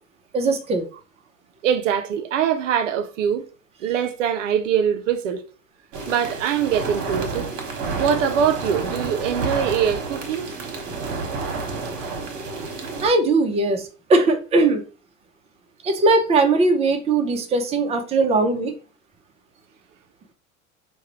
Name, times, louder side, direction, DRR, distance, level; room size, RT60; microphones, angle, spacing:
voice 1, 0.3-0.9 11.1-11.2 13.0-14.8 15.8-18.7, right 3 dB, 15° right, 0.5 m, -20 dB
voice 2, 1.6-3.4 3.8-5.4 6.1-7.5 8.0-10.5, right 8 dB, 65° right, 0.5 m, -23 dB
sound 1, 5.9-13.1, right 4 dB, 45° right, 1.1 m, -30 dB
4.7 x 2.2 x 2.8 m
figure-of-eight pair, 75°, 40 cm